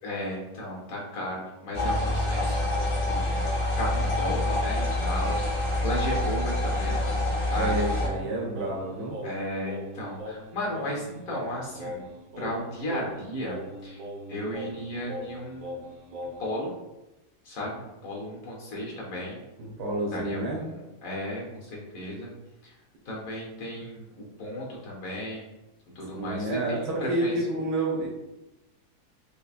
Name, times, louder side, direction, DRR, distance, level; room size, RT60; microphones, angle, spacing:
voice 1, 0.0-8.0 9.2-12.1 12.4-14.0 14.3-15.8 16.4-16.7 17.4-19.4 20.1-22.3 22.6-22.8 23.0-25.5 25.9-27.3, left 1 dB, 60° left, -2 dB, 1.3 m, -35 dB
sound 1, 1.7-8.1, left 1 dB, 40° left, 0.4 m, -26 dB
voice 2, 7.5-9.2 19.6-20.6 26.1-26.8 27.1-28.1, right 1 dB, 85° right, -4 dB, 1.4 m, -29 dB
Singing, 8.0-16.6, equal, 65° right, 0.9 m, -40 dB
5.2 x 2.2 x 2.4 m, 0.98 s
omnidirectional pair, 1.7 m